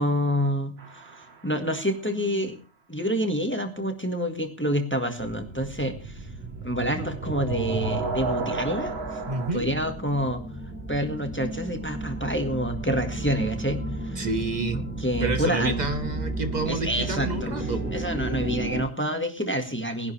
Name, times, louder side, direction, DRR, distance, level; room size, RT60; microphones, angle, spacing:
voice 1, 0.0-2.6 2.9-6.3 6.6-9.2 9.5-10.4 10.9-14.2 14.7-15.9 16.7-20.1, equal, 10° left, 6 dB, 1.6 m, -28 dB
sound 1, 0.8-1.6 5.2-9.5, right 3 dB, 60° right, 1.5 m, -33 dB
sound 2, 5.2-18.8, right 2 dB, 10° right, 2.8 m, -34 dB
voice 2, 9.3-9.7 14.2-14.8 15.2-17.9, right 3 dB, 40° right, 8 dB, 1.4 m, -29 dB
20.0 x 10.5 x 3.3 m, 0.35 s
omnidirectional pair, 1.2 m